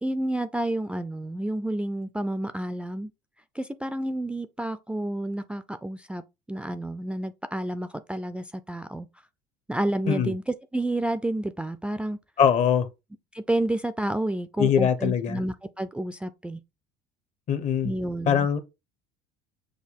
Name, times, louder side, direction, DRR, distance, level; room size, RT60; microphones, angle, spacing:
voice 1, 0.0-3.1 3.5-6.2 6.5-9.1 9.7-12.2 13.3-16.6 17.8-18.5, right 1 dB, 5° right, 0.3 m, -30 dB
voice 2, 12.4-12.9 14.6-15.4 17.5-17.9 18.3-18.6, left 8 dB, 50° left, 0.8 m, -22 dB
6.4 x 2.3 x 3.4 m
supercardioid pair, 95°, 15 cm